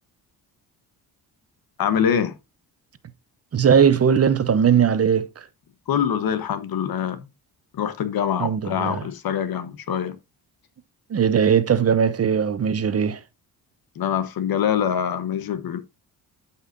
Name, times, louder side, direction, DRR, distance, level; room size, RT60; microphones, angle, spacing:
voice 1, 1.8-2.3 5.9-7.2 7.7-10.2 14.0-15.8, left 8 dB, 65° left, 1.3 m, -24 dB
voice 2, 3.5-5.4 8.4-9.1 11.1-13.2, right 7 dB, 40° right, 0.8 m, -19 dB
12.5 x 5.6 x 2.6 m
cardioid pair, 105°, 39 cm